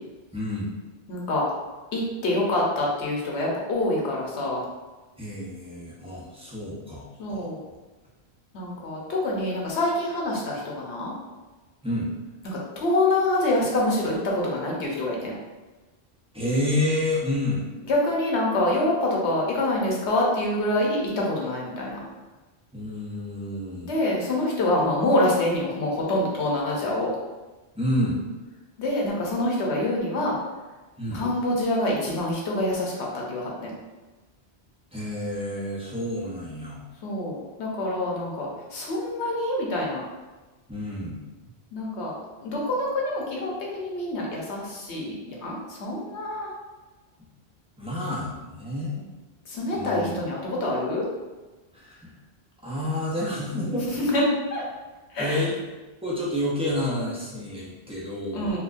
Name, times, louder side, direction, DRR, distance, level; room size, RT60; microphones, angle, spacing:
voice 1, 0.3-0.7 5.2-7.0 7.3-7.5 11.8-12.1 16.3-17.7 22.7-23.9 27.7-28.2 31.0-31.2 34.9-36.8 40.7-41.2 47.8-49.1 49.7-50.2 51.7-52.1 52.6-53.9 55.2-55.5 56.0-58.5, left 1 dB, 5° right, -7 dB, 0.7 m, -29 dB
voice 2, 1.1-1.4 1.9-4.6 7.2-7.6 8.5-11.1 12.4-15.4 17.9-22.0 23.8-27.1 28.8-30.4 31.1-33.7 37.0-40.0 41.7-42.1 42.4-46.5 49.5-51.0 53.9-54.2 54.5-54.6 55.1-55.4 58.3-58.6, left 1 dB, 90° left, -3 dB, 1.1 m, -26 dB
4.2 x 2.4 x 2.5 m, 1.2 s
omnidirectional pair, 1.1 m